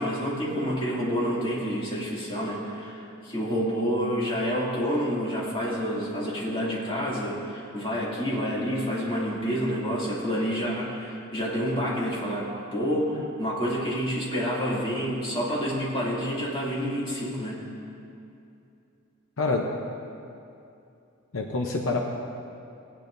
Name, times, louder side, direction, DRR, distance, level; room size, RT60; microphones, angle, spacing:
voice 1, 0.0-17.6, equal, 25° left, -7 dB, 2.3 m, -28 dB
voice 2, 21.3-22.1, left 3 dB, 75° left, 1 dB, 0.7 m, -26 dB
17.5 x 9.0 x 2.6 m, 2.6 s
head